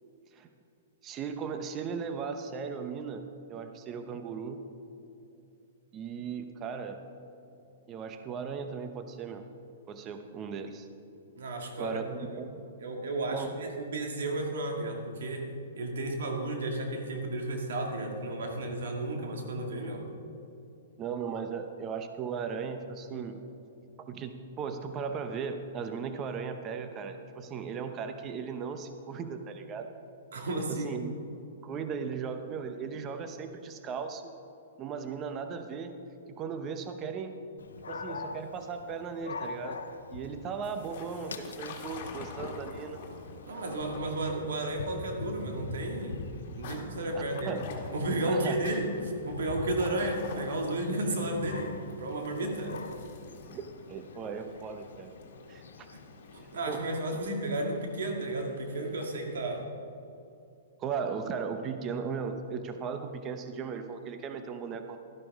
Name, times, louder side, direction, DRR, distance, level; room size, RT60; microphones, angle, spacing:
voice 1, 1.0-3.2 3.5-4.6 5.9-7.0 7.9-9.4 9.9-10.9 11.8-12.6 13.3-13.5 21.0-23.4 24.1-29.9 30.7-31.2 31.6-34.3 34.8-36.0 36.3-37.4 37.9-39.8 40.1-43.0 47.1-47.6 48.3-48.6 52.7-52.8 53.4-55.1 55.5-55.6 56.7-56.8 57.1-57.2 60.8-65.0, right 6 dB, 25° right, 7 dB, 0.8 m, -37 dB
voice 2, 11.4-12.4 12.8-15.5 15.8-20.0 30.3-30.9 43.5-46.2 46.5-47.6 47.9-48.9 49.2-52.8 56.3-59.6, right 2 dB, 75° right, 2 dB, 2.1 m, -33 dB
Dog, 37.6-57.2, left 3 dB, 90° left, 0.8 m, -44 dB
sound 1, 40.6-59.6, left 4 dB, 55° left, 2.0 m, -48 dB
12.0 x 12.0 x 3.7 m, 2.8 s
hypercardioid pair, 135°, 0 cm